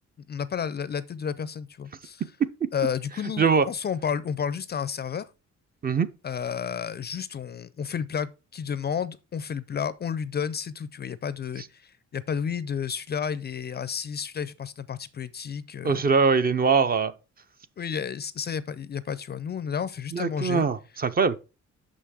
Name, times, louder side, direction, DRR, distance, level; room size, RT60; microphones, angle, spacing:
voice 1, 0.3-2.2 2.7-5.3 6.2-16.0 17.8-20.6, left 7 dB, 35° left, 0.4 m, -31 dB
voice 2, 15.8-17.1 20.1-21.4, right 5 dB, 30° right, 0.5 m, -22 dB
6.4 x 5.7 x 4.7 m
cardioid pair, 145°, 30 cm